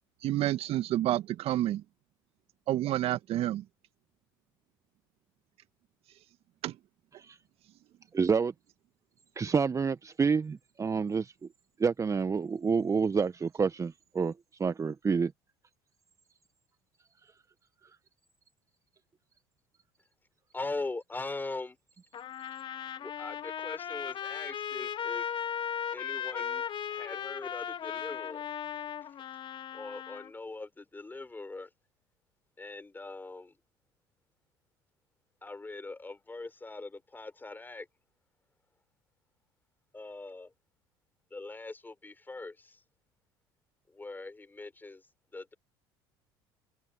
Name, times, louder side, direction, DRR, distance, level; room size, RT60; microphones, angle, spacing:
voice 1, 0.2-1.8 2.7-3.6 6.6-6.8, right 13 dB, 55° right, 2.1 m, -29 dB
voice 2, 8.1-8.5 9.4-11.3 11.8-14.3 14.6-15.3, right 5 dB, 25° right, 1.1 m, -28 dB
voice 3, 20.5-21.8 23.0-25.4 25.9-28.4 29.7-31.7 32.6-33.6 35.4-37.9 39.9-40.5 41.3-42.8 43.9-45.1 45.3-45.5, left 3 dB, 15° left, 6.2 m, -41 dB
Trumpet, 22.1-30.3, left 8 dB, 45° left, 2.6 m, -37 dB
hypercardioid pair, 65°, 12 cm